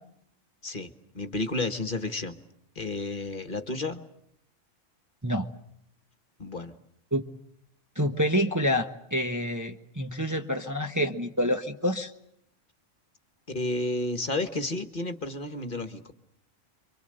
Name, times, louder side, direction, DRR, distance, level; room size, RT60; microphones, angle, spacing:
voice 1, 0.6-2.4 2.8-4.0 6.4-6.7 13.5-16.1, left 2 dB, 40° left, 8 dB, 1.7 m, -31 dB
voice 2, 8.0-12.1, equal, 15° right, 4 dB, 1.1 m, -27 dB
28.5 x 24.5 x 7.9 m, 0.71 s
omnidirectional pair, 1.3 m